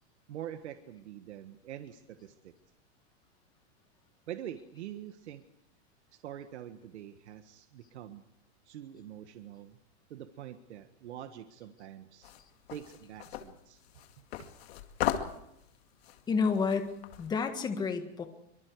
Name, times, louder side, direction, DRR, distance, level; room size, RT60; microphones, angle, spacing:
voice 1, 0.3-2.5 4.3-5.4 6.1-8.3 8.6-9.8 10.1-12.3 12.7-13.8 14.4-14.5, right 11 dB, 85° right, 8 dB, 1.6 m, -45 dB
sound 1, 12.2-17.3, left 11 dB, 65° left, 2.3 m, -38 dB
voice 2, 16.3-18.3, left 5 dB, 10° left, 6 dB, 1.6 m, -30 dB
24.5 x 24.5 x 4.8 m, 0.82 s
supercardioid pair, 170°, 33 cm